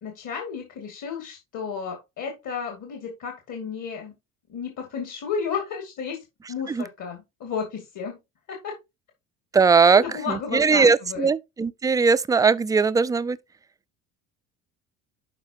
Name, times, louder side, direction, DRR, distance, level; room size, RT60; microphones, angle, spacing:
voice 1, 0.0-4.1 4.5-6.2 6.5-8.1 8.5-8.8 9.9-11.3, left 6 dB, 45° left, 2.7 m, -32 dB
voice 2, 9.5-13.4, right 5 dB, 10° right, 0.4 m, -20 dB
12.0 x 4.7 x 3.0 m
figure-of-eight pair, 60°, 40 cm